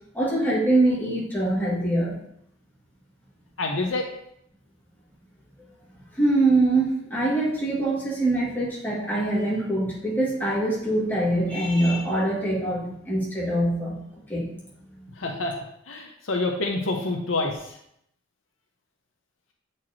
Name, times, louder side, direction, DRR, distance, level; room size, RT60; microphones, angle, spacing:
voice 1, 0.1-2.2 6.1-14.0 14.3-14.5, right 2 dB, 10° left, -7 dB, 2.2 m, -23 dB
voice 2, 3.6-4.1 15.2-15.6 15.9-17.8, left 2 dB, 80° left, 2 dB, 0.9 m, -27 dB
7.6 x 4.6 x 3.0 m, 0.73 s
head